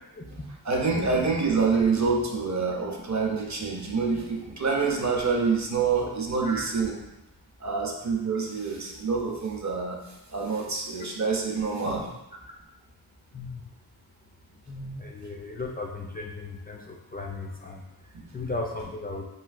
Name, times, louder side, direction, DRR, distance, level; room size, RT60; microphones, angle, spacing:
voice 1, 0.6-7.0 7.6-10.0 10.3-12.0 18.1-18.2, right 4 dB, 45° right, 0 dB, 0.6 m, -26 dB
voice 2, 14.7-19.3, left 2 dB, 25° left, -1 dB, 0.3 m, -36 dB
3.2 x 2.7 x 2.4 m, 0.93 s
wide cardioid pair, 45°, 38 cm